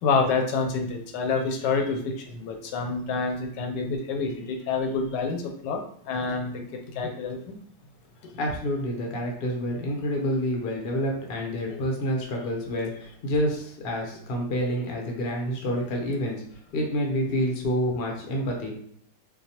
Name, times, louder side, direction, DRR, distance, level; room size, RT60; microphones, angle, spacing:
voice 1, 0.0-7.6 11.7-11.8, left 4 dB, 75° left, 3 dB, 1.2 m, -28 dB
voice 2, 8.4-16.4 16.7-18.8, equal, 55° left, 0 dB, 0.6 m, -28 dB
3.9 x 2.6 x 2.8 m, 0.66 s
omnidirectional pair, 2.0 m